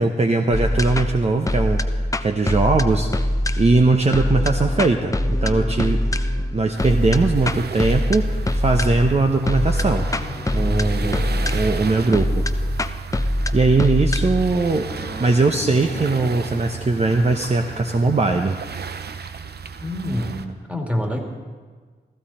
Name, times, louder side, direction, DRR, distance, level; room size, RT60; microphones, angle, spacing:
voice 1, 0.0-3.3 3.6-6.0 6.5-10.1 10.5-11.3 11.5-12.5 13.5-14.9 15.2-18.6, right 3 dB, 35° right, 4 dB, 0.9 m, -20 dB
sound 1, 0.5-17.7, left 1 dB, 20° left, 0.7 m, -24 dB
sound 2, 6.7-20.5, right 6 dB, 65° right, 0.8 m, -34 dB
voice 2, 10.6-11.5 19.8-20.4 20.7-21.2, left 1 dB, 5° right, 2 dB, 2.5 m, -27 dB
15.0 x 14.0 x 4.3 m, 1.5 s
cardioid pair, 50°, 18 cm